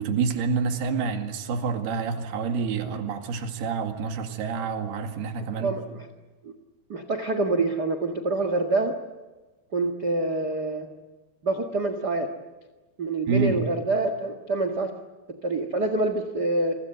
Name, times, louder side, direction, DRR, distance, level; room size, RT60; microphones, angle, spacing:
voice 1, 0.0-5.7 13.3-13.6, right 5 dB, 75° right, 5 dB, 4.0 m, -28 dB
voice 2, 5.6-6.1 6.4-6.5 6.9-8.9 9.7-10.9 11.4-12.3 13.0-14.9 15.3-16.8, right 2 dB, 45° right, 8 dB, 1.3 m, -26 dB
29.0 x 24.5 x 7.8 m, 1.2 s
omnidirectional pair, 4.7 m